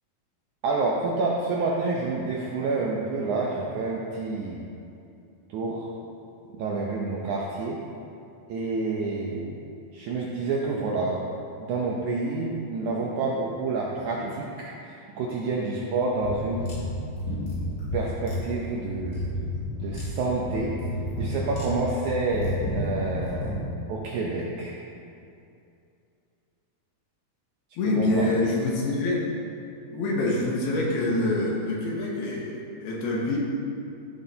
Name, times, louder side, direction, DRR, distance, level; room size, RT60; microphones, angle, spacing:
voice 1, 0.6-4.7 5.5-5.9 6.5-7.8 8.5-9.6 9.9-11.3 11.6-16.6 17.9-19.2 19.8-20.8 21.2-23.5 23.9-24.8 27.8-28.3, right 3 dB, 80° right, -3 dB, 1.8 m, -28 dB
sound 1, 16.2-23.6, left 1 dB, 35° left, 2.1 m, -31 dB
voice 2, 27.8-29.3 29.9-33.4, left 2 dB, 90° left, -3 dB, 3.4 m, -26 dB
14.5 x 7.7 x 2.8 m, 2.6 s
omnidirectional pair, 4.4 m